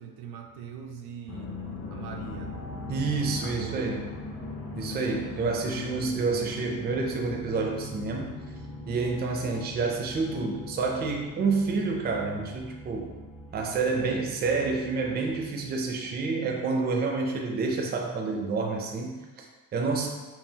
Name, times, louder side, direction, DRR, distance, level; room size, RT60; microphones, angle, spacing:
voice 1, 0.0-1.5 1.9-2.6 3.4-3.8 4.9-5.7, right 7 dB, 85° right, 3 dB, 0.6 m, -42 dB
sound 1, 1.3-16.7, left 3 dB, 35° left, 0.6 m, -40 dB
voice 2, 2.9-4.0 4.8-8.3 8.9-13.1 13.5-20.1, right 4 dB, 25° right, 1 dB, 0.5 m, -29 dB
5.6 x 2.4 x 2.8 m, 1.2 s
cardioid pair, 150°, 37 cm